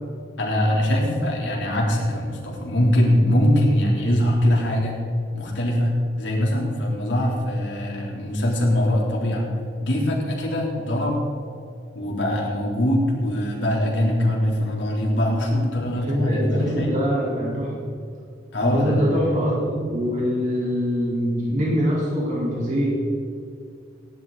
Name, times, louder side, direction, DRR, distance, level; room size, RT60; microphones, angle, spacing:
voice 1, 0.4-5.0 5.3-9.5 9.8-11.2 11.9-17.0 18.5-19.1, left 1 dB, 90° left, -3 dB, 3.5 m, -22 dB
voice 2, 15.9-17.7 18.6-22.9, equal, 40° right, -6 dB, 4.0 m, -24 dB
18.0 x 11.0 x 4.1 m, 2.3 s
head